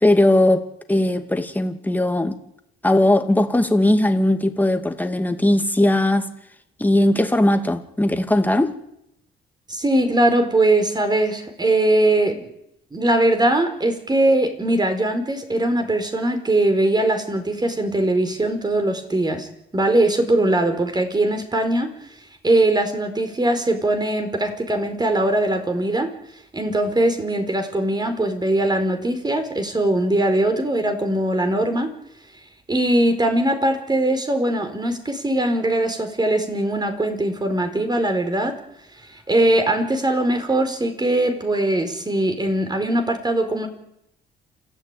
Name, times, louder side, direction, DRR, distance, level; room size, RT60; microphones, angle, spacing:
voice 1, 0.0-2.4 2.8-6.3 6.8-8.8, left 1 dB, 10° left, 2.5 m, -19 dB
voice 2, 9.7-12.5 12.9-19.5 19.7-21.9 22.4-26.1 26.5-31.9 32.7-38.6 39.3-43.7, right 1 dB, 20° right, 4.8 m, -21 dB
28.5 x 14.0 x 9.2 m
cardioid pair, 90°, 20 cm